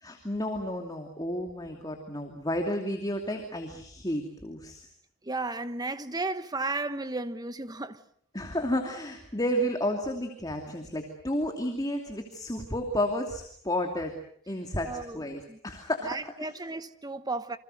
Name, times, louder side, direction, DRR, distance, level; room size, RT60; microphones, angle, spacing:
voice 1, 0.0-4.9 8.3-14.1 14.5-16.6, left 1 dB, 20° left, 2.7 m, -32 dB
voice 2, 5.2-8.0 14.9-15.2 15.5-15.6 16.0-17.6, right 3 dB, 20° right, 1.1 m, -34 dB
29.0 x 26.0 x 6.6 m
head